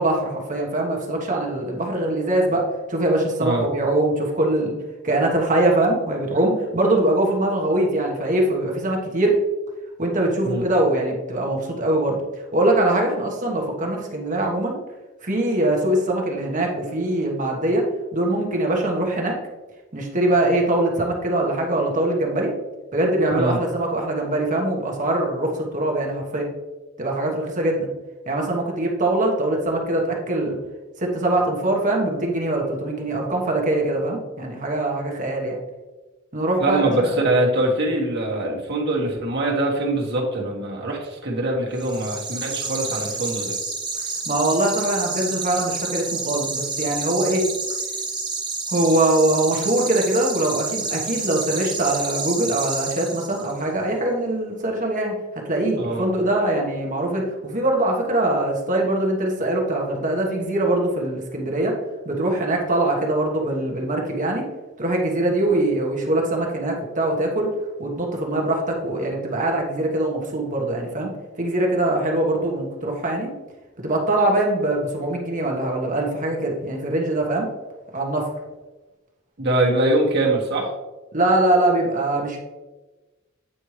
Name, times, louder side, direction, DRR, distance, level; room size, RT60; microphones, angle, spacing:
voice 1, 0.0-4.7 5.0-9.4 10.0-12.2 12.5-14.8 15.2-17.9 18.1-19.4 19.9-22.5 22.9-26.5 27.0-27.9 28.3-30.6 31.0-35.6 36.3-37.1 44.3-47.5 48.7-55.1 55.5-61.8 62.0-64.4 64.8-67.5 67.8-71.1 71.4-73.3 73.8-77.5 77.9-78.3 81.1-82.4, right 1 dB, 40° right, 0 dB, 1.3 m, -22 dB
voice 2, 36.6-43.6 55.8-56.0 79.4-80.7, right 1 dB, 55° right, -2 dB, 1.6 m, -23 dB
sound 1, 41.8-53.6, right 4 dB, 20° right, 0.9 m, -29 dB
8.8 x 4.5 x 3.2 m, 1.2 s
head